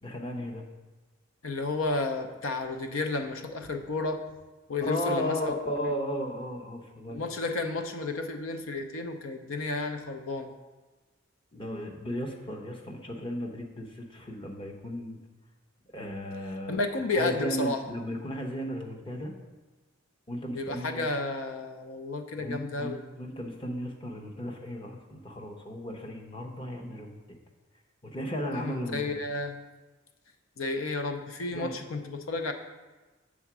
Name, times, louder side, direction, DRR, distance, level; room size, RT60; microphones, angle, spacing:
voice 1, 0.0-0.6 4.8-7.2 11.5-15.2 15.9-16.8 17.1-19.3 20.3-21.0 22.4-27.2 28.0-29.2 31.5-31.8, equal, 25° left, 1 dB, 0.8 m, -35 dB
voice 2, 1.4-4.2 4.7-5.5 6.1-6.2 7.1-10.5 16.7-17.8 20.5-23.0 28.5-29.6 30.6-32.5, left 3 dB, 85° left, 6 dB, 0.7 m, -32 dB
7.1 x 3.7 x 6.0 m, 1.2 s
head